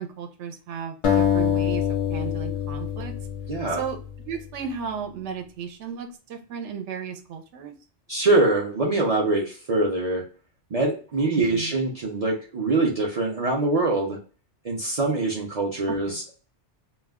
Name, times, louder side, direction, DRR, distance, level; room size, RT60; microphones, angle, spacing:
voice 1, 0.0-3.2 3.7-4.0 4.3-7.7 11.4-11.7 15.9-16.2, right 6 dB, 80° right, 5 dB, 0.9 m, -34 dB
sound 1, 1.0-4.3, left 8 dB, 45° left, 0.4 m, -25 dB
voice 2, 3.5-3.8 8.1-10.2 10.7-14.2 14.6-16.3, right 2 dB, 50° right, -3 dB, 0.4 m, -24 dB
2.3 x 2.1 x 3.3 m, 0.37 s
omnidirectional pair, 1.2 m